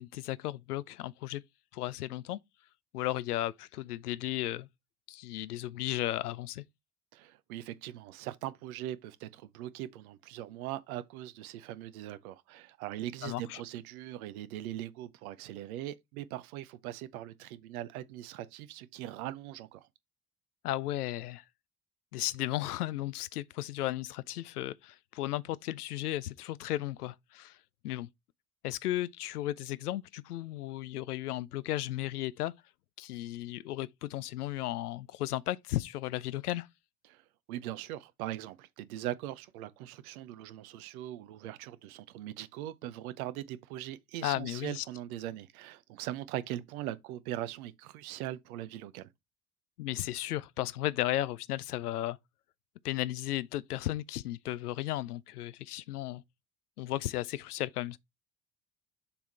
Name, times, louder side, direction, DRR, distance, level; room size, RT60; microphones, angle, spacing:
voice 1, 0.0-1.4 1.7-2.4 2.9-4.7 5.1-6.6 13.2-13.6 20.6-21.4 22.1-27.6 27.8-28.1 28.6-32.5 33.0-36.7 44.2-44.8 49.8-52.2 52.8-56.2 56.8-58.0, left 15 dB, 80° left, 0.5 m, -35 dB
voice 2, 7.1-19.9 37.1-37.2 37.5-49.1, right 13 dB, 70° right, 0.8 m, -40 dB
6.9 x 3.6 x 4.3 m
figure-of-eight pair, 55°, 45 cm